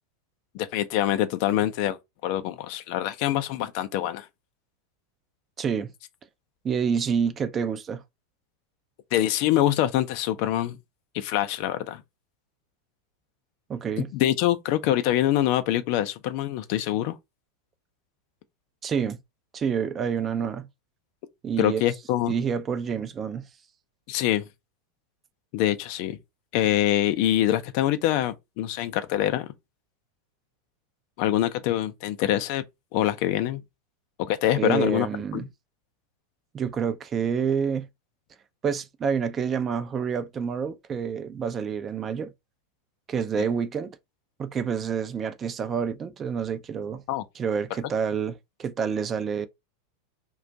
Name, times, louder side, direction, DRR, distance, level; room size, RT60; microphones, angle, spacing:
voice 1, 0.5-2.0 2.2-4.3 9.1-10.8 11.1-12.0 14.0-17.2 21.6-22.3 24.1-24.5 25.5-26.2 26.5-29.5 31.2-32.6 32.9-33.6 34.2-35.1 35.3-35.5 43.4-43.5 47.1-47.2, left 12 dB, 50° left, 0.5 m, -25 dB
voice 2, 5.6-5.9 6.6-8.0 13.7-14.1 18.8-19.2 19.5-20.7 21.4-21.8 22.3-23.4 34.6-35.5 36.5-37.9 38.6-42.3 43.1-44.0 44.4-47.0 47.4-49.5, right 7 dB, 25° right, 0.4 m, -28 dB
2.5 x 2.3 x 3.9 m
figure-of-eight pair, 90°, 0 cm